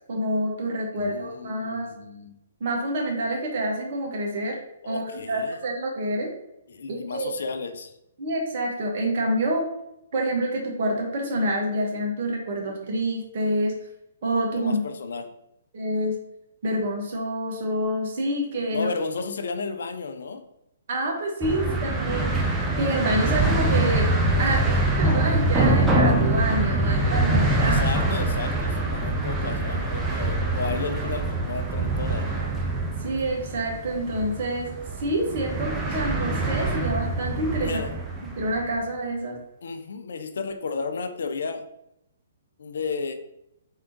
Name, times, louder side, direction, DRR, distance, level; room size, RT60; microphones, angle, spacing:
voice 1, 0.1-1.9 2.6-4.6 4.8-6.3 6.9-7.3 8.2-9.6 10.1-13.7 14.2-14.8 15.7-16.2 16.6-18.9 20.9-22.3 22.8-24.1 24.4-27.8 29.0-29.1 33.0-34.7 35.0-37.8 38.4-39.4, right 1 dB, 45° right, 0 dB, 1.1 m, -27 dB
voice 2, 0.9-2.3 4.8-5.6 6.7-8.0 12.7-12.8 14.5-15.3 18.7-20.4 24.4-24.8 27.6-32.5 37.6-37.9 39.6-41.6 42.6-43.1, left 4 dB, 60° left, 7 dB, 0.4 m, -33 dB
sound 1, 21.4-38.7, right 2 dB, 10° right, 0.5 m, -24 dB
3.6 x 3.4 x 2.8 m, 0.82 s
figure-of-eight pair, 125°, 0 cm